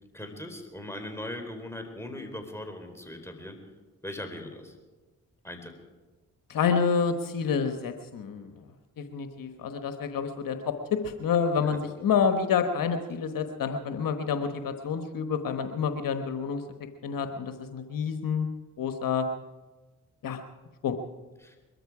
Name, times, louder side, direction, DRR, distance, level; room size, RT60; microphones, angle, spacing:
voice 1, 0.1-3.6 4.0-4.8 5.4-5.7 11.6-11.8 21.4-21.6, left 1 dB, 5° left, 4 dB, 4.1 m, -39 dB
voice 2, 6.5-8.6 9.0-16.6 17.0-18.5 18.8-19.3 20.2-20.4 20.8-21.0, left 6 dB, 70° left, 7 dB, 1.2 m, -28 dB
22.0 x 13.5 x 4.9 m, 1.2 s
supercardioid pair, 50°, 35 cm